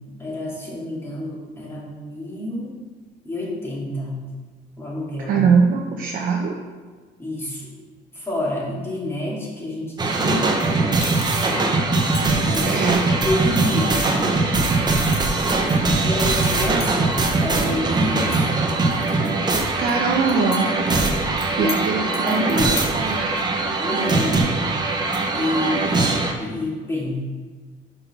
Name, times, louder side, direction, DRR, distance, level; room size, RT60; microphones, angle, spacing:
voice 1, 0.2-2.8 3.2-4.2 4.8-5.4 7.2-7.7 8.1-10.5 11.5-11.8 12.5-14.0 16.0-18.5 21.6-22.7 23.8-24.4 25.3-27.2, left 1 dB, 15° left, -4 dB, 2.3 m, -28 dB
voice 2, 5.2-6.6 12.7-13.0 18.0-18.1 19.8-20.7 21.5-23.3, right 5 dB, 55° right, 0 dB, 0.9 m, -22 dB
sound 1, 10.0-26.3, right 3 dB, 25° right, 1.0 m, -21 dB
sound 2, 11.0-11.5 11.9-12.7 13.3-13.4 14.0-14.2 14.5-16.0 16.4-17.4 17.7-17.8 18.2-19.1 19.5-20.6 20.9-21.0 21.4-21.8 22.1-23.1, left 5 dB, 75° left, 1.7 m, -35 dB
5.6 x 5.4 x 5.9 m, 1.4 s
cardioid pair, 110°, 17 cm